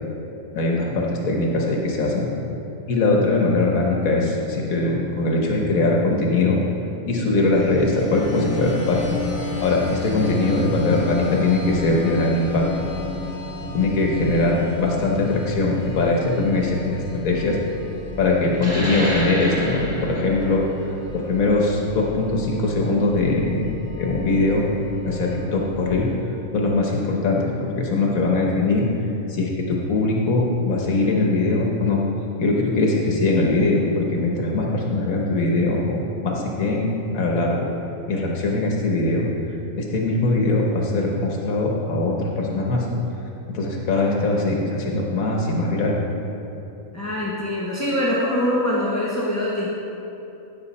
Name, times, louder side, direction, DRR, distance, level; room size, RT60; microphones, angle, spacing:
voice 1, 0.5-2.3 2.9-6.6 7.1-9.2 9.6-12.7 13.6-17.6 18.2-20.6 21.1-23.7 24.0-24.7 25.0-26.1 26.5-28.9 29.3-32.0 32.4-37.7 38.1-39.2 39.8-42.9 43.5-46.0, left 2 dB, 90° left, -1 dB, 1.6 m, -21 dB
sound 1, 7.5-26.2, left 3 dB, 55° left, 1.8 m, -34 dB
sound 2, 18.5-23.7, equal, 10° right, 1.7 m, -30 dB
voice 2, 46.9-49.7, left 1 dB, 15° left, -6 dB, 1.1 m, -23 dB
16.0 x 6.5 x 4.2 m, 2.9 s
omnidirectional pair, 1.4 m